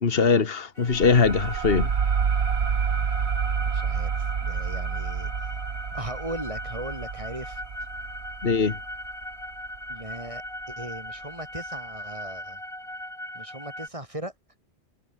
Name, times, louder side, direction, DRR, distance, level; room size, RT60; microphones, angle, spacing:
voice 1, 0.0-1.9 8.4-8.8, left 5 dB, 65° left, 1.8 m, -21 dB
sound 1, 0.8-13.9, left 1 dB, 30° left, 7.1 m, -39 dB
sound 2, 0.9-10.1, right 6 dB, 80° right, 1.5 m, -29 dB
voice 2, 3.5-5.5 5.9-7.6 9.9-12.6 13.3-14.3, right 1 dB, 30° right, 3.9 m, -38 dB
omnidirectional pair, 1.1 m